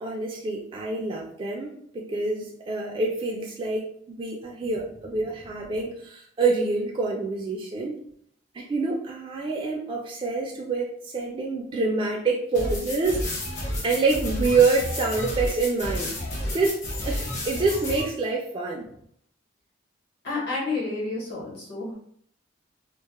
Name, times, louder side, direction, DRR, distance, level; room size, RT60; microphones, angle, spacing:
voice 1, 0.0-8.0 8.5-13.2 13.8-16.1 16.5-18.9, right 3 dB, 25° right, -1 dB, 0.3 m, -26 dB
sound 1, 12.5-18.0, left 1 dB, 40° left, 0.7 m, -31 dB
voice 2, 20.2-22.0, left 3 dB, 60° left, -5 dB, 1.0 m, -30 dB
2.2 x 2.0 x 2.9 m, 0.65 s
head